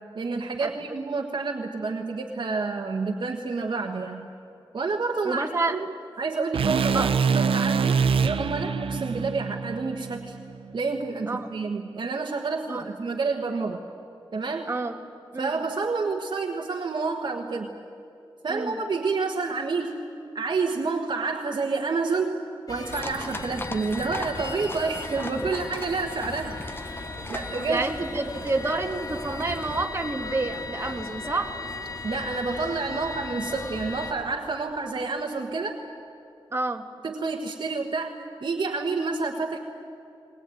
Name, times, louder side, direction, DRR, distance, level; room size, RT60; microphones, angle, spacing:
voice 1, 0.1-4.3 4.7-5.9 6.2-10.4 10.7-13.8 14.3-14.7 15.4-17.7 18.4-20.0 20.3-22.4 22.7-26.6 27.3-27.8 32.0-35.8 37.0-38.2 38.4-39.6, right 4 dB, 55° right, 2 dB, 1.4 m, -29 dB
voice 2, 5.2-5.8 6.9-7.1 11.3-11.5 12.7-12.9 14.7-14.9 15.3-15.6 18.5-18.8 27.7-31.6 36.5-36.9, right 3 dB, 30° right, 4 dB, 1.8 m, -29 dB
sound 1, 6.5-10.7, right 5 dB, 90° right, 0.7 m, -25 dB
sound 2, 22.7-34.1, left 3 dB, 45° left, 2.3 m, -37 dB
sound 3, 22.9-29.9, left 2 dB, 25° left, 1.2 m, -39 dB
20.5 x 20.5 x 9.2 m, 2.7 s
wide cardioid pair, 110°, 9 cm